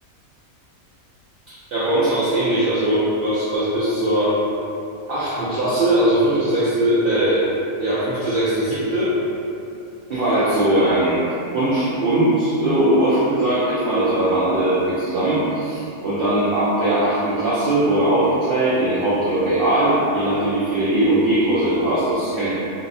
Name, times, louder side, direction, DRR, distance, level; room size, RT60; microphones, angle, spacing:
voice 1, 1.5-4.4 5.1-7.4 7.8-9.1 10.1-11.2 11.5-22.5, right 1 dB, 70° right, -10 dB, 0.5 m, -20 dB
2.6 x 2.0 x 2.6 m, 2.7 s
omnidirectional pair, 1.5 m